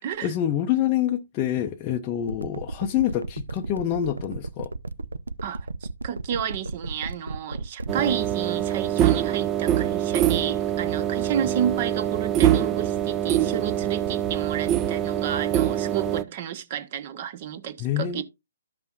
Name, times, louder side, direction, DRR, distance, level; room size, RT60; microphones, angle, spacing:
voice 1, 0.2-4.7 17.8-18.2, left 11 dB, 25° left, 0.6 m, -26 dB
sound 1, 2.2-8.2, right 2 dB, 90° right, 0.5 m, -33 dB
voice 2, 5.4-18.2, right 9 dB, 40° right, 1.0 m, -31 dB
sound 2, 7.9-16.2, right 11 dB, 20° right, 0.4 m, -24 dB
13.5 x 5.4 x 2.4 m
hypercardioid pair, 140°, 0 cm